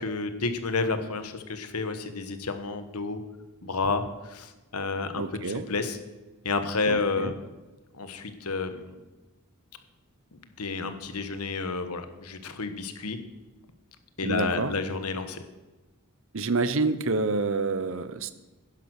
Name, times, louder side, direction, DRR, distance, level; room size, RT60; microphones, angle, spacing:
voice 1, 0.0-3.2 3.6-6.0 6.4-7.5 7.9-8.9 10.3-13.2 14.2-15.4, left 4 dB, 90° left, 9 dB, 1.3 m, -30 dB
voice 2, 5.2-5.7 6.9-7.3 14.2-14.7 16.3-18.3, right 3 dB, 65° right, 13 dB, 0.8 m, -28 dB
11.0 x 10.5 x 6.5 m, 1.1 s
head